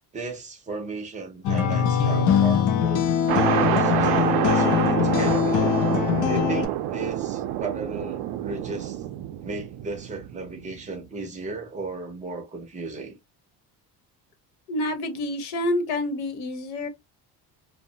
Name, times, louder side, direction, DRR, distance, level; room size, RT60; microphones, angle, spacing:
voice 1, 0.1-5.7 6.3-9.0 9.4-13.2, right 3 dB, 20° right, 0.6 m, -35 dB
sound 1, 1.4-6.7, left 8 dB, 55° left, 0.5 m, -22 dB
sound 2, 3.3-10.8, right 12 dB, 85° right, 0.5 m, -27 dB
voice 2, 14.7-16.9, left 1 dB, 85° left, 0.9 m, -28 dB
2.6 x 2.1 x 2.6 m
cardioid pair, 175°, 38 cm